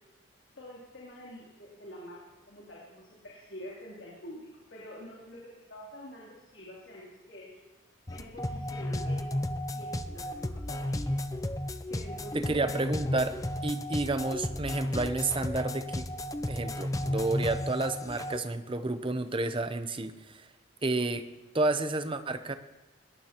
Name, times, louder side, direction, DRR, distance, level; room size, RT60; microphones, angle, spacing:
voice 1, 0.6-7.6 8.1-9.5 9.7-11.0 11.9-12.8, equal, 65° left, -6 dB, 3.2 m, -47 dB
sound 1, 8.1-18.4, left 1 dB, 15° left, 0.5 m, -33 dB
voice 2, 12.3-16.1 16.5-20.5 20.8-22.5, right 2 dB, 25° right, 9 dB, 0.7 m, -31 dB
21.5 x 18.5 x 3.0 m, 1.1 s
head